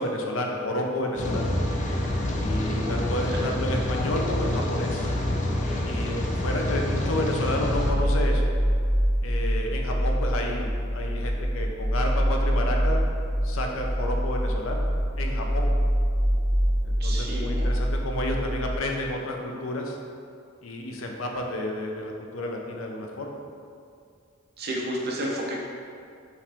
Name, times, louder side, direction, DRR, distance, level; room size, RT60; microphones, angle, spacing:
voice 1, 0.0-1.5 2.4-5.1 5.8-8.5 9.2-13.1 13.4-14.8 15.2-15.7 16.9-20.0 20.6-23.4, left 1 dB, 85° left, 2 dB, 0.6 m, -31 dB
Rain, 1.1-7.9, left 1 dB, 40° left, 0.5 m, -27 dB
sound 1, 7.6-18.8, equal, 65° left, 1.3 m, -25 dB
voice 2, 17.0-17.7 24.6-25.6, right 1 dB, 55° right, -2 dB, 0.8 m, -31 dB
5.5 x 2.6 x 3.4 m, 2.3 s
head